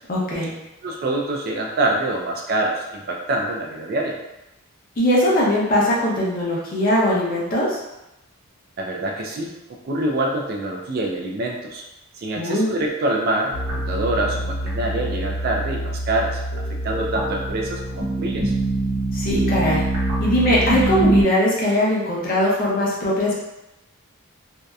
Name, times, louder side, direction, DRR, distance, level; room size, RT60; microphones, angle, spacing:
voice 1, 0.1-0.5 5.0-7.8 12.3-12.7 19.1-19.8 20.2-23.3, left 1 dB, 40° left, -5 dB, 0.6 m, -20 dB
voice 2, 0.8-4.2 8.8-9.5 9.8-11.8 12.1-13.5 13.9-16.4 16.8-18.5, right 2 dB, 45° right, 0 dB, 0.3 m, -25 dB
sound 1, 13.5-21.2, right 1 dB, 85° right, 0.9 m, -24 dB
2.7 x 2.1 x 2.3 m, 0.93 s
head